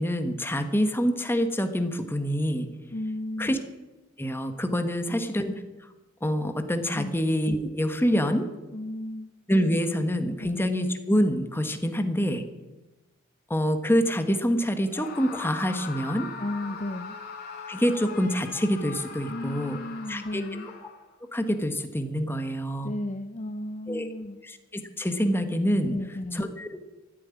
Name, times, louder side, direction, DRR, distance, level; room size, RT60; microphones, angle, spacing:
voice 1, 0.0-2.7 3.4-3.6 4.2-5.6 6.2-8.5 9.5-12.4 13.5-16.3 17.7-19.8 20.1-20.4 21.3-22.9 23.9-24.1 24.4-26.0 26.3-26.7, equal, 10° left, 7 dB, 1.3 m, -26 dB
voice 2, 2.9-3.5 5.1-5.2 6.9-7.2 8.7-9.3 10.4-10.5 16.4-17.1 19.3-20.7 22.8-24.4 25.9-26.4, left 1 dB, 35° left, 8 dB, 0.7 m, -34 dB
Screaming, 14.9-21.1, left 5 dB, 50° left, 3.2 m, -41 dB
14.0 x 9.6 x 9.6 m, 1.1 s
head